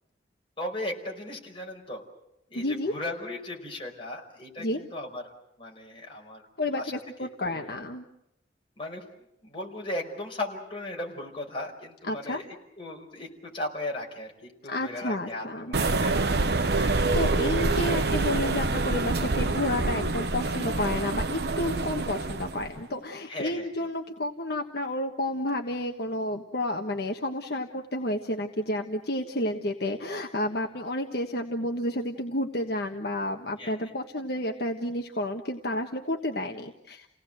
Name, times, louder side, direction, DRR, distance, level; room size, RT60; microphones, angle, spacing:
voice 1, 0.6-2.0 2.5-5.2 5.6-6.5 6.8-6.9 7.2-7.6 8.8-9.0 9.4-16.3 17.0-17.8 23.3-23.9 33.6-33.9, left 1 dB, 30° left, 0 dB, 5.0 m, -37 dB
voice 2, 2.5-2.9 4.6-4.8 6.6-8.0 12.1-12.4 14.7-15.7 16.8-37.1, left 1 dB, 60° left, 3 dB, 1.4 m, -31 dB
sound 1, 15.7-22.7, right 3 dB, 65° right, 1.0 m, -26 dB
30.0 x 18.0 x 7.9 m, 0.84 s
head